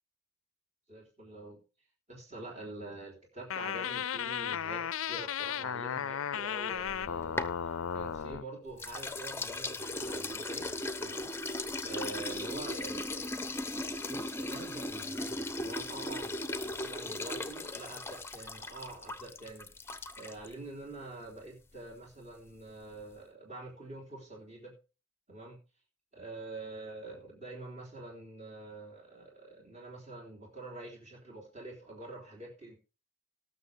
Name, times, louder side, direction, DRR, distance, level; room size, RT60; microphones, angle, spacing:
voice 1, 0.9-1.6 2.1-10.7 11.0-11.3 11.8-13.1 14.1-16.4 16.6-19.7 20.2-24.7 25.3-25.6 26.1-32.8, right 2 dB, 30° right, -2 dB, 3.7 m, -46 dB
sound 1, 3.5-8.4, left 8 dB, 70° left, 0.5 m, -35 dB
sound 2, 6.8-8.4 8.8-20.5, left 2 dB, 10° left, 0.8 m, -38 dB
19.0 x 6.8 x 3.4 m, 0.32 s
head